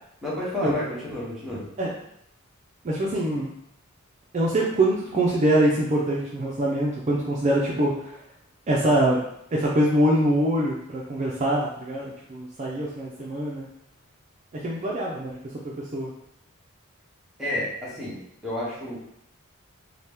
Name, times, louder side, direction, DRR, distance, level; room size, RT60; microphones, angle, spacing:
voice 1, 0.2-1.7 17.4-19.0, left 1 dB, ahead, -8 dB, 0.9 m, -30 dB
voice 2, 2.8-3.5 4.3-8.2 8.7-9.2 9.5-13.7 14.6-15.4 15.9-16.1, right 1 dB, 35° right, -4 dB, 0.4 m, -24 dB
2.8 x 2.1 x 3.3 m, 0.75 s
head